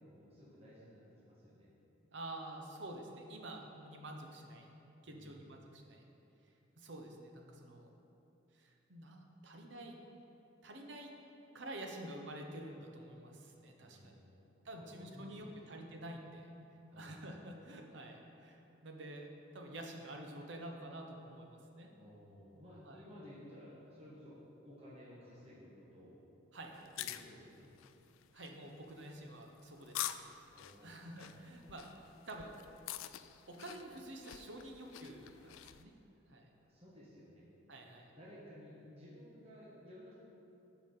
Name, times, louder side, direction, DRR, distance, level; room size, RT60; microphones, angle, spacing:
voice 1, 0.0-1.7 5.0-5.4 13.8-16.0 16.9-17.2 21.9-24.4 24.6-26.2 27.0-27.7 30.5-31.7 36.5-37.5 38.1-40.1, equal, 30° right, -8 dB, 1.4 m, -56 dB
voice 2, 2.1-4.7 5.0-6.0 6.8-7.9 8.5-10.0 10.6-11.1 11.5-14.1 14.6-16.5 17.0-21.9 22.9-23.0 26.5-26.9 28.3-30.2 30.8-32.5 33.5-35.9 36.3-36.5 37.7-38.1, right 1 dB, 65° right, 2 dB, 0.9 m, -49 dB
sound 1, 26.8-35.8, left 12 dB, 80° left, 0.3 m, -47 dB
13.0 x 4.8 x 3.8 m, 2.9 s
head